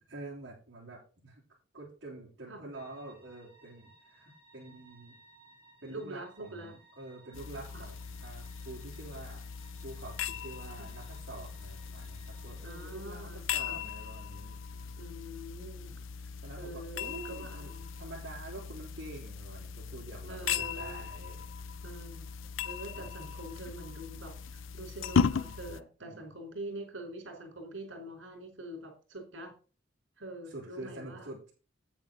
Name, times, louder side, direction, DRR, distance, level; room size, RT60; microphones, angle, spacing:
voice 1, 0.0-1.4 1.7-5.2 5.8-9.4 9.8-14.9 15.9-17.7 18.0-21.5 26.0-26.2 30.5-31.5, right 2 dB, 60° right, -7 dB, 3.6 m, -47 dB
sound 1, 2.7-13.0, right 3 dB, 10° right, 5.7 m, -61 dB
voice 2, 5.9-6.7 7.7-7.8 10.8-10.9 12.6-13.8 15.0-15.9 16.6-17.9 20.3-21.1 21.8-22.4 22.6-29.5 30.2-31.3, right 1 dB, 80° right, 3 dB, 4.6 m, -45 dB
sound 2, 7.3-25.8, left 6 dB, 90° left, 0.5 m, -37 dB
8.9 x 8.8 x 4.0 m, 0.35 s
head